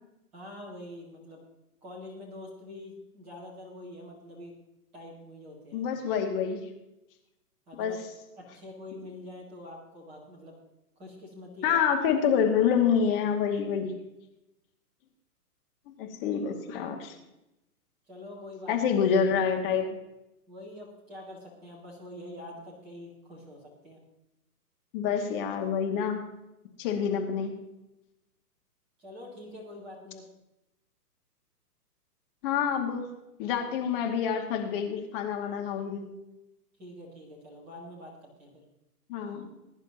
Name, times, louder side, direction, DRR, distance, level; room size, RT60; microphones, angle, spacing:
voice 1, 0.3-1.4 1.8-4.5 4.9-5.9 7.7-8.0 8.4-10.6 11.0-11.8 18.1-18.7 20.5-24.0 29.0-30.2 36.8-38.6, left 1 dB, 5° right, -3 dB, 0.4 m, -45 dB
voice 2, 5.7-6.7 7.8-8.0 11.6-13.9 16.0-17.2 18.7-20.0 24.9-26.2 26.8-27.6 32.4-33.1 33.4-36.1 39.1-39.5, left 7 dB, 35° left, 3 dB, 2.3 m, -27 dB
21.0 x 10.5 x 2.9 m, 0.91 s
hypercardioid pair, 135°, 47 cm